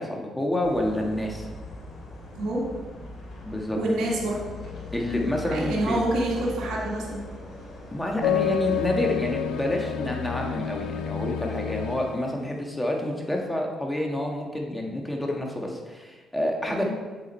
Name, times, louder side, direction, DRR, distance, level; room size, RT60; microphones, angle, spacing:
voice 1, 0.0-1.5 3.4-3.8 4.9-6.0 7.9-16.8, left 1 dB, 10° left, 0 dB, 1.6 m, -28 dB
sound 1, 0.6-11.2, left 3 dB, 65° left, 2.8 m, -41 dB
voice 2, 3.7-4.4 5.5-7.2 16.7-16.8, right 1 dB, 70° right, -4 dB, 1.7 m, -27 dB
sound 2, 8.2-12.3, left 9 dB, 90° left, 0.5 m, -29 dB
7.4 x 7.2 x 4.4 m, 1.3 s
cardioid pair, 90°, 0 cm